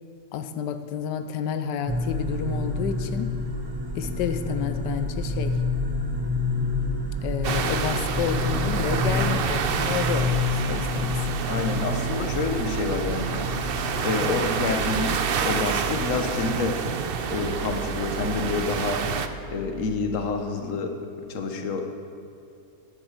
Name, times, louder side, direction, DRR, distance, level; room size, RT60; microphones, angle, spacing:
voice 1, 0.3-3.4 4.0-5.6 7.2-10.4 10.7-11.2, left 8 dB, 90° left, 9 dB, 1.3 m, -30 dB
sound 1, 1.9-20.2, left 2 dB, 20° right, 0.8 m, -30 dB
sound 2, 7.4-19.3, right 6 dB, 60° right, 0.6 m, -28 dB
voice 2, 11.5-13.3 14.0-16.8 17.3-19.0 19.5-21.9, left 4 dB, 50° left, 5 dB, 1.5 m, -28 dB
11.0 x 11.0 x 7.5 m, 2.6 s
omnidirectional pair, 1.8 m